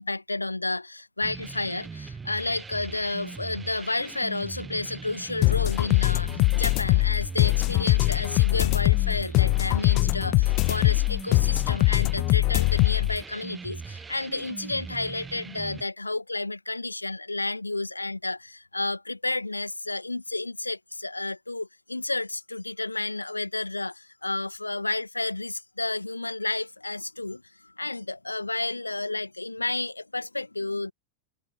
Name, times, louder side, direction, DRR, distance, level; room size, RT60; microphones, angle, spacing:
voice 1, 0.0-30.9, left 2 dB, 85° left, 2.0 m, -31 dB
sound 1, 1.2-15.8, right 5 dB, 15° right, 1.3 m, -40 dB
sound 2, 5.4-13.2, left 25 dB, 40° left, 0.5 m, -22 dB
figure-of-eight pair, 90°, 0 cm